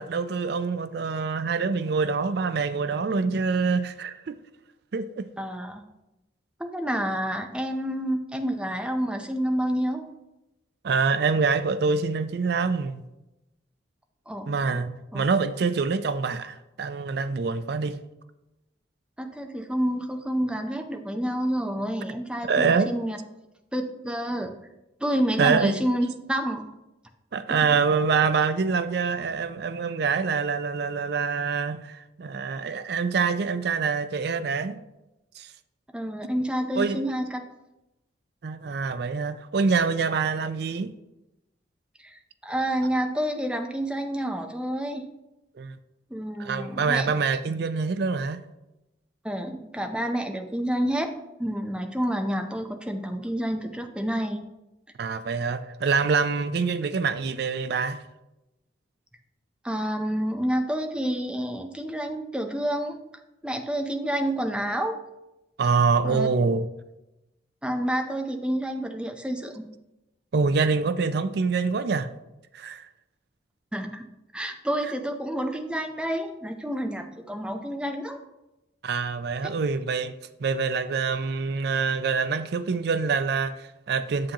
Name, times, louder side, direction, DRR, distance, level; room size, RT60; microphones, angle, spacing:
voice 1, 0.0-4.3 4.9-5.3 10.8-13.0 14.5-18.0 22.4-22.9 25.4-25.7 27.3-34.8 35.4-35.5 36.8-37.0 38.4-40.9 45.6-45.7 46.4-48.4 55.0-58.0 65.6-66.7 70.3-72.1 72.5-72.9 78.8-80.1 80.4-84.3, right 5 dB, 60° right, 0.4 m, -25 dB
voice 2, 5.4-5.8 6.6-10.0 14.3-14.5 15.1-15.2 19.2-23.2 23.7-24.5 25.0-26.6 35.9-37.4 42.0-45.0 46.1-47.1 49.2-51.1 51.4-54.5 59.6-63.0 63.4-65.0 66.0-66.3 67.6-69.7 73.7-74.1 74.3-78.2 79.4-79.5, equal, 5° right, 0.5 m, -29 dB
7.6 x 7.3 x 2.9 m
head